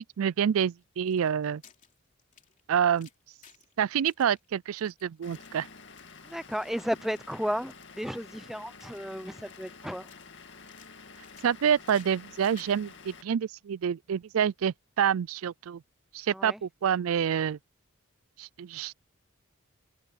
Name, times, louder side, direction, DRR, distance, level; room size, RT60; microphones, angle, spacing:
voice 1, 0.0-1.6 2.7-3.1 3.8-5.7 11.4-15.8 16.1-17.6 18.4-18.9, right 8 dB, 75° right, 0.4 m, -27 dB
sound 1, 0.6-3.7 4.1-6.2 6.5-6.7 7.0-7.4 7.7-9.2 9.5-10.4 10.7-12.8, left 8 dB, 35° left, 3.0 m, -58 dB
Vehicle / Engine, 5.2-13.2, left 4 dB, 55° left, 2.3 m, -50 dB
voice 2, 6.2-10.1 16.3-16.6, equal, ahead, 0.7 m, -34 dB
head